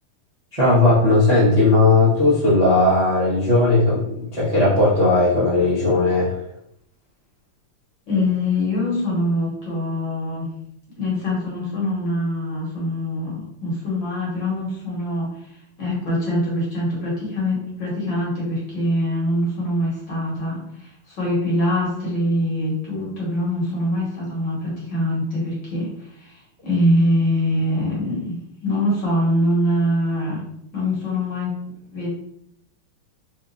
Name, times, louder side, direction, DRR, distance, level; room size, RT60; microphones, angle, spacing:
voice 1, 0.5-6.4, left 2 dB, 30° right, -10 dB, 0.7 m, -17 dB
voice 2, 8.1-10.6 10.9-15.4 15.8-30.5 30.7-31.6 31.9-32.1, left 1 dB, 60° left, -5 dB, 2.0 m, -23 dB
4.2 x 2.5 x 2.6 m, 0.73 s
omnidirectional pair, 2.3 m